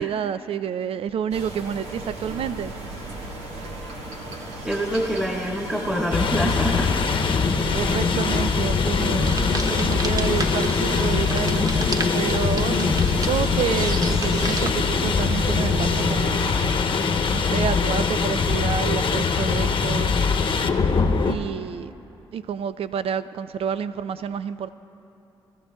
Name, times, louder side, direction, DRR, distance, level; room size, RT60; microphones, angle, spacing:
voice 1, 0.0-2.7 7.7-9.4 9.7-11.7 12.1-16.5 17.3-20.2 21.2-21.9 22.3-24.7, right 8 dB, 65° right, 14 dB, 0.4 m, -29 dB
sound 1, 1.3-16.8, right 1 dB, 85° right, 1.3 m, -35 dB
voice 2, 4.6-7.0, equal, 10° right, -1 dB, 1.7 m, -25 dB
sound 2, 6.1-21.3, left 5 dB, 55° left, 0.9 m, -22 dB
sound 3, 9.2-14.7, right 2 dB, 35° right, 0.8 m, -32 dB
21.5 x 14.0 x 2.3 m, 2.7 s
supercardioid pair, 55°, 10 cm